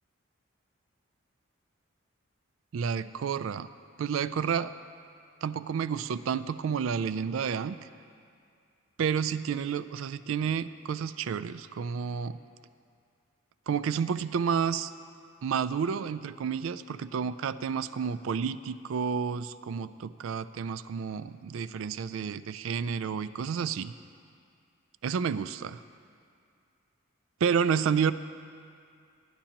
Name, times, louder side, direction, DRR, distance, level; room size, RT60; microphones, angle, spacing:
voice 1, 2.7-3.7 4.0-4.7 5.4-7.8 9.0-12.4 13.7-14.9 15.4-23.9 25.0-25.8 27.4-28.1, right 6 dB, 80° right, 14 dB, 0.3 m, -30 dB
19.0 x 10.0 x 2.9 m, 2.3 s
head